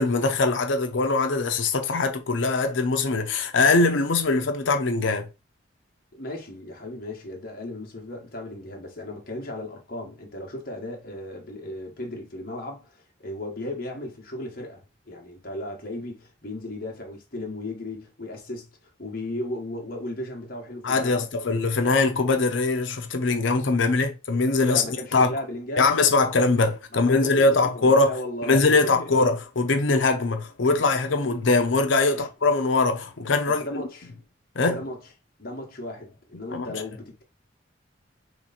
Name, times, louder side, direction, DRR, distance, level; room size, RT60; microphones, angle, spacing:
voice 1, 0.0-5.3 20.8-24.8 25.1-25.3 25.8-28.1 28.4-33.8 34.6-34.8 36.5-36.8, left 3 dB, 75° left, 0.7 m, -22 dB
voice 2, 6.1-21.3 24.6-25.9 26.9-29.1 32.1-32.3 33.4-34.1 34.6-35.0 35.4-37.2, left 1 dB, 50° left, 1.2 m, -36 dB
3.3 x 3.1 x 4.0 m
head